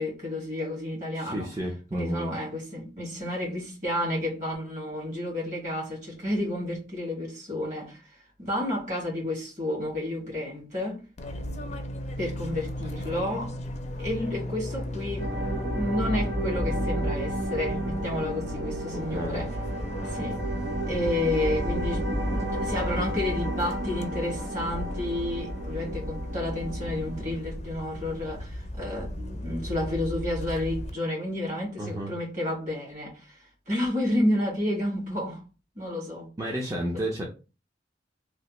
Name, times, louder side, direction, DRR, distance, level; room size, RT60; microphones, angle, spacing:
voice 1, 0.0-1.5 1.9-11.1 12.2-13.5 14.0-19.6 20.0-20.5 20.9-33.4 33.7-35.4 35.8-36.3, left 1 dB, 45° right, 1.7 m, -31 dB
voice 2, 1.1-2.3 18.9-19.4 31.8-32.1 36.4-37.2, right 1 dB, 20° right, 0.5 m, -31 dB
Fixed-wing aircraft airplane, 11.2-30.9, left 1 dB, 40° left, 0.4 m, -36 dB
sound 1, 15.2-27.4, right 1 dB, 80° right, 1.1 m, -32 dB
3.2 x 2.4 x 2.9 m
head